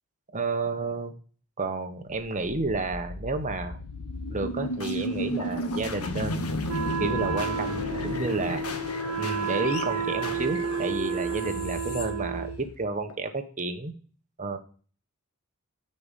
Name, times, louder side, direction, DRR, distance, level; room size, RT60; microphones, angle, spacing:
voice 1, 0.3-1.1 1.6-3.8 4.3-8.6 9.2-13.9 14.4-14.6, right 3 dB, 35° right, 7 dB, 1.2 m, -31 dB
sound 1, 2.3-13.1, left 1 dB, 90° left, 1.4 m, -34 dB
Wind instrument woodwind instrument, 6.7-12.6, right 6 dB, 75° right, 0.8 m, -31 dB
10.5 x 5.6 x 8.3 m, 0.42 s
head